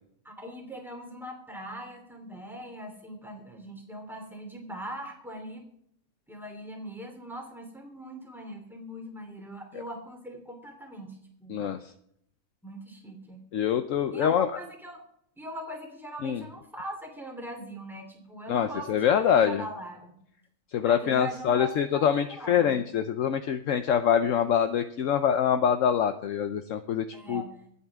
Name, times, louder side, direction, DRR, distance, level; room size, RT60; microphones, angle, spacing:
voice 1, 0.2-5.6 6.3-11.5 12.6-13.4 14.1-15.0 15.4-20.2 20.8-22.7 27.1-27.6, right 1 dB, ahead, 1 dB, 3.1 m, -41 dB
voice 2, 13.5-14.5 16.2-16.4 18.5-19.6 20.7-27.4, left 8 dB, 65° left, 9 dB, 1.0 m, -25 dB
25.5 x 8.5 x 3.6 m, 0.70 s
omnidirectional pair, 1.5 m